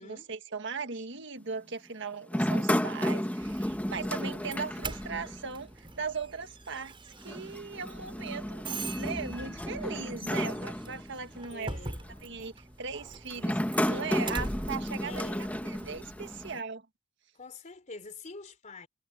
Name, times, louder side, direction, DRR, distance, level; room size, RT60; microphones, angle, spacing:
voice 1, 0.0-6.9 7.2-11.8 12.2-13.6 13.9-15.3 15.6-16.8, right 5 dB, 65° right, 1.7 m, -38 dB
sound 1, 2.3-5.7 5.9-6.0 7.2-11.4 12.1-12.4 13.3-16.6, equal, 10° left, 1.3 m, -33 dB
Doorbell, 3.4-16.5, right 2 dB, 25° right, 7.1 m, -43 dB
voice 2, 11.5-12.1 15.0-15.6 17.3-18.9, left 3 dB, 40° left, 3.5 m, -46 dB
head